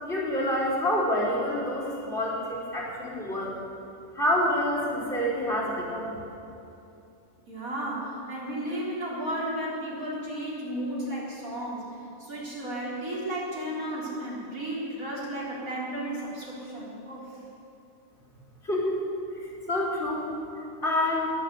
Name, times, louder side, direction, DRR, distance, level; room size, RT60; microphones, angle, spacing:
voice 1, 0.0-3.5 4.1-6.1 18.6-19.0 19.7-20.2 20.8-21.3, left 1 dB, 50° left, -5 dB, 4.4 m, -27 dB
voice 2, 7.5-11.8 12.2-17.3, right 1 dB, 80° right, -6 dB, 4.3 m, -33 dB
21.0 x 7.4 x 8.4 m, 2.8 s
omnidirectional pair, 1.5 m